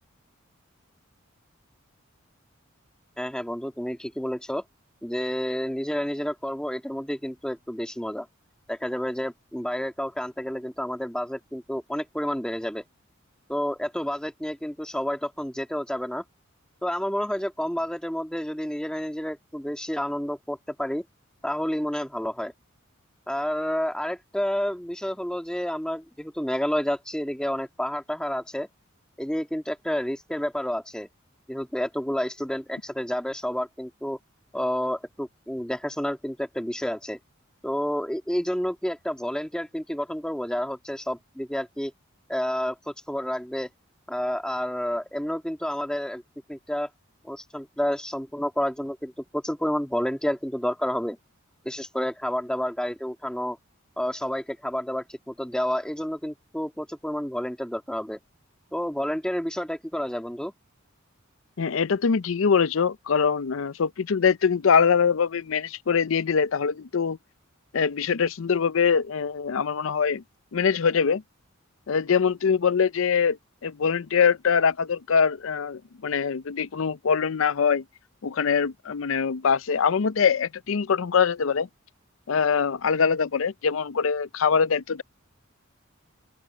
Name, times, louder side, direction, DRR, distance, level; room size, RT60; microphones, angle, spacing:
voice 1, 3.2-4.6 5.0-8.3 8.7-12.8 13.5-16.2 16.8-21.0 21.4-22.5 23.3-28.7 29.2-31.1 31.5-34.2 34.5-37.2 37.6-41.9 42.3-43.7 44.1-46.2 46.5-46.9 47.2-51.2 51.6-53.6 54.0-58.2 58.7-60.5, equal, 5° left, 2.0 m, -30 dB
voice 2, 61.6-67.2 67.7-70.2 70.5-71.2 71.9-73.4 73.6-77.8 78.2-81.7 82.3-85.0, left 6 dB, 70° left, 0.5 m, -23 dB
open air
head